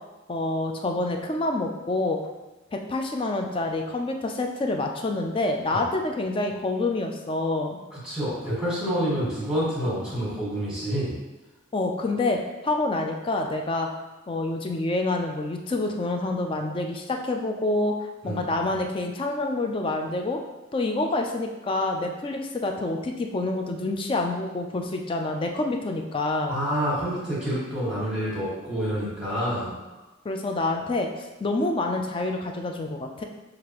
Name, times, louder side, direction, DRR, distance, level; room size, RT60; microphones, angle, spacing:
voice 1, 0.3-2.2 2.7-7.8 11.7-13.9 14.3-18.0 18.2-20.4 20.7-26.6 30.2-31.1 31.4-33.2, left 2 dB, 25° left, 3 dB, 0.3 m, -27 dB
voice 2, 7.9-11.1 18.2-18.7 26.5-29.7, equal, 5° right, -8 dB, 1.5 m, -28 dB
6.4 x 2.5 x 3.0 m, 1.1 s
head